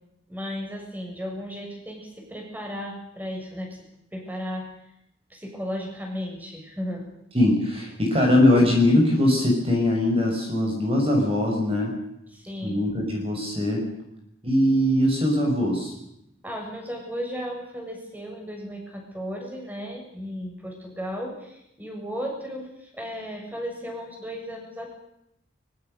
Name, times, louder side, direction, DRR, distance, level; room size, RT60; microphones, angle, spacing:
voice 1, 0.3-3.8 4.1-4.7 5.3-7.1 12.3-12.8 16.4-25.0, equal, 10° right, 1 dB, 7.2 m, -35 dB
voice 2, 7.3-11.9 12.6-13.8 14.4-15.9, left 1 dB, 30° right, 0 dB, 6.1 m, -21 dB
24.5 x 23.0 x 6.7 m, 0.79 s
head